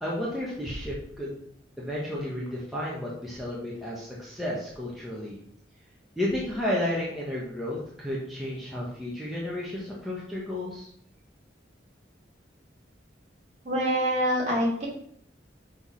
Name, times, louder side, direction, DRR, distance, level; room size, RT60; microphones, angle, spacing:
voice 1, 0.0-1.3 1.8-5.4 6.2-10.9, left 1 dB, ahead, -6 dB, 1.3 m, -32 dB
voice 2, 13.6-14.9, equal, 40° right, -4 dB, 3.0 m, -25 dB
6.2 x 3.9 x 6.2 m, 0.66 s
head